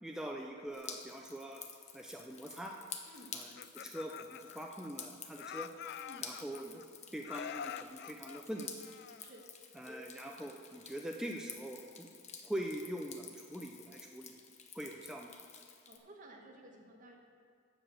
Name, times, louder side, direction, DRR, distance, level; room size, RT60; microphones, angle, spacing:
voice 1, 0.0-1.6 1.9-2.7 3.3-5.7 6.2-6.9 7.1-8.7 9.8-12.1 12.4-14.4 14.7-15.3, right 1 dB, 5° right, 0 dB, 0.5 m, -43 dB
Drip, 0.7-16.0, left 6 dB, 40° left, 0.9 m, -51 dB
Laughter, 3.4-5.1 5.4-6.8 7.2-9.5, left 8 dB, 60° left, 0.3 m, -46 dB
voice 2, 15.9-17.2, right 1 dB, 45° right, 1 dB, 1.5 m, -55 dB
12.5 x 5.2 x 7.7 m, 2.2 s
head